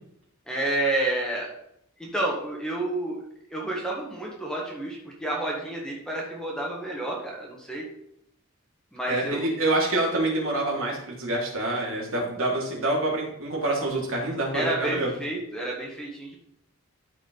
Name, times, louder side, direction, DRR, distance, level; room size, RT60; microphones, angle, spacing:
voice 1, 0.5-1.5 2.0-3.2 3.5-7.8 8.9-9.5 14.5-16.4, right 1 dB, 5° left, -2 dB, 1.7 m, -30 dB
voice 2, 9.1-15.1, right 2 dB, 65° right, -3 dB, 2.9 m, -26 dB
13.0 x 4.8 x 4.0 m, 0.74 s
head